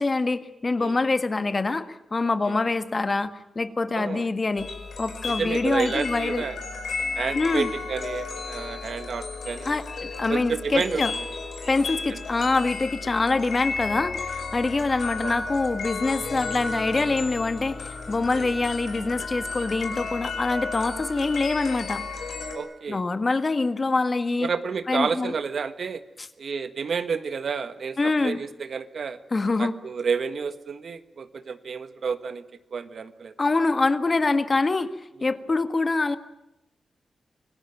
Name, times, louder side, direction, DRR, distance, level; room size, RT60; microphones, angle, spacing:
voice 1, 0.0-4.7 5.0-6.4 7.3-7.7 9.6-11.1 11.7-22.0 22.9-24.5 24.9-25.3 26.2-26.3 28.0-28.4 29.3-29.7 33.4-34.9 35.2-36.2, left 3 dB, 35° left, 10 dB, 1.6 m, -25 dB
voice 2, 3.9-4.3 5.3-6.6 7.2-9.8 10.3-11.0 11.6-11.7 12.1-12.2 15.2-15.4 18.3-18.5 22.5-23.0 24.4-26.0 26.4-29.2 29.6-32.4 32.7-33.3, right 5 dB, 65° right, 11 dB, 1.5 m, -30 dB
sound 1, 4.6-22.5, left 4 dB, 70° left, 5.1 m, -33 dB
26.0 x 18.5 x 9.3 m, 0.90 s
cardioid pair, 75°, 0 cm